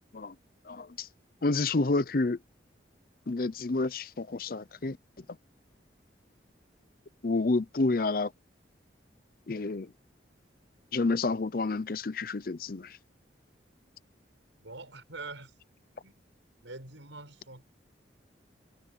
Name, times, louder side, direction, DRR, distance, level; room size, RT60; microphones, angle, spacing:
voice 1, 0.7-1.1 1.4-2.4 3.3-5.0 7.2-8.3 9.5-9.9 10.9-13.0, left 3 dB, 50° left, 0.6 m, -29 dB
voice 2, 14.6-15.6 16.0-16.2 16.6-17.6, right 3 dB, 85° right, 6.5 m, -44 dB
head